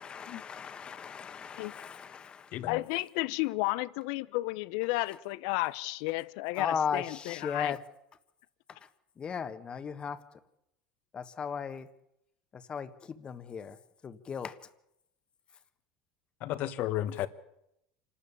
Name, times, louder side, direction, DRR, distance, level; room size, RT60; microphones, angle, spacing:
voice 1, 0.0-2.6 6.6-7.8 9.2-10.2 11.1-11.9 12.5-13.8 14.0-14.6, left 6 dB, 30° left, 1.5 m, -36 dB
voice 2, 2.7-7.8, left 21 dB, 75° left, 0.7 m, -32 dB
voice 3, 16.4-17.3, left 13 dB, 55° left, 1.4 m, -33 dB
26.5 x 12.5 x 8.6 m
supercardioid pair, 120°, 3 cm